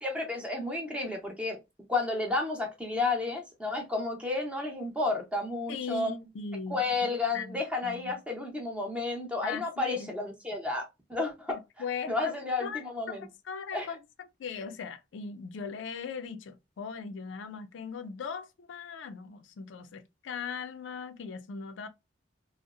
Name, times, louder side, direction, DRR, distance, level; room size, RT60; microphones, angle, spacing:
voice 1, 0.0-1.6 1.9-6.2 6.7-11.6 12.1-13.3 13.7-13.9, left 3 dB, 5° right, 0.7 m, -32 dB
voice 2, 5.7-8.1 9.4-10.1 11.5-12.8 13.1-21.9, left 6 dB, 85° left, 0.4 m, -39 dB
2.6 x 2.0 x 2.4 m
head